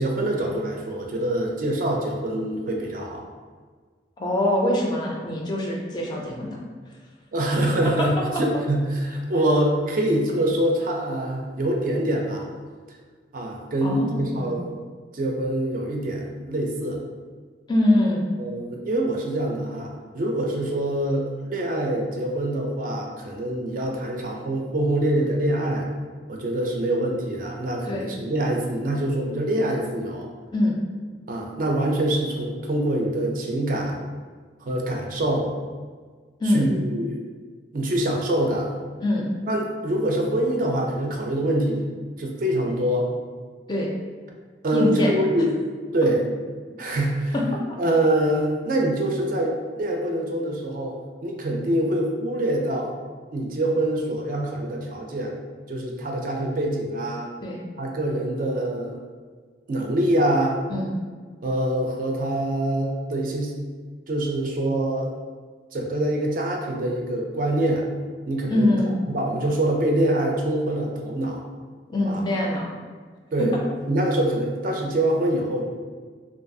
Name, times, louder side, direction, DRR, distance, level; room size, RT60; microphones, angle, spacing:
voice 1, 0.0-3.2 7.3-12.5 13.3-14.8 15.1-17.0 18.4-25.9 26.3-30.3 31.3-34.0 34.6-35.5 36.4-37.2 37.7-38.7 39.5-41.9 42.2-43.1 44.6-45.5 45.9-46.2 46.8-47.3 47.8-52.9 53.3-55.4 55.7-57.3 57.8-59.0 59.7-60.6 61.4-63.5 64.1-65.1 65.7-67.8 68.3-68.7 69.1-71.4 72.1-72.2 73.3-73.5 73.9-75.7, right 1 dB, 50° right, 0 dB, 0.4 m, -25 dB
voice 2, 4.2-6.6 7.8-8.1 13.8-14.6 17.7-18.3 27.9-28.0 30.5-30.8 36.4-36.7 39.0-39.3 43.7-43.9 44.7-45.2 47.3-47.8 57.4-57.6 60.7-61.0 68.5-69.0 71.9-72.7 73.4-73.5, left 1 dB, 25° left, -1 dB, 0.4 m, -23 dB
2.6 x 2.3 x 2.6 m, 1.5 s
head